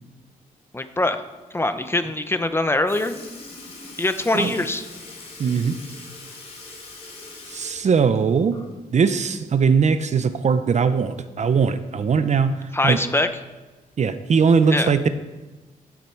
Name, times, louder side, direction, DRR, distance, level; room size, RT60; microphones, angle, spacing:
voice 1, 0.7-1.2 1.5-3.2 4.0-4.9 12.7-13.3 14.7-14.9, left 2 dB, 15° left, 9 dB, 0.8 m, -23 dB
Sink (filling or washing) / Liquid, 2.9-9.0 9.3-9.4 11.0-11.1 12.0-12.1 12.9-13.1 13.9-14.0, left 2 dB, 45° left, 4.0 m, -42 dB
voice 2, 5.4-5.8 7.5-13.0 14.0-15.1, right 5 dB, 50° right, 11 dB, 0.7 m, -20 dB
16.5 x 8.9 x 4.6 m, 1.2 s
wide cardioid pair, 115°, 15 cm